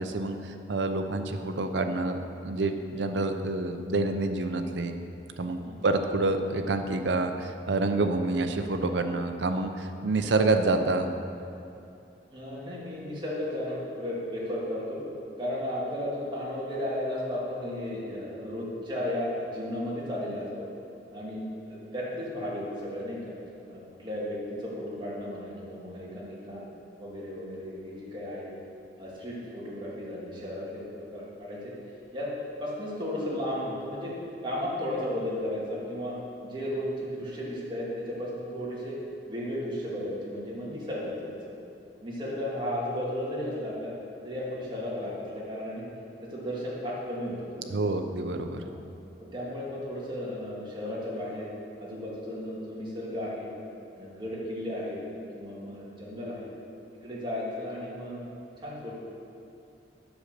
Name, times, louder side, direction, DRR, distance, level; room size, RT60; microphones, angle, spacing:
voice 1, 0.0-5.0 5.4-11.1 47.7-48.6, right 2 dB, 85° right, 7 dB, 0.7 m, -28 dB
voice 2, 12.3-15.0 15.4-20.7 21.1-23.3 23.7-26.6 27.0-28.5 29.0-30.8 31.1-31.7 32.1-32.3 32.6-34.1 34.4-36.1 36.4-39.0 39.3-41.3 42.0-43.9 44.2-45.8 46.2-47.7 48.5-48.8 49.2-51.5 51.8-53.5 53.9-55.0 55.3-56.5 57.0-58.2 58.6-58.9, left 1 dB, 30° right, -6 dB, 2.3 m, -34 dB
8.2 x 6.3 x 6.6 m, 2.6 s
head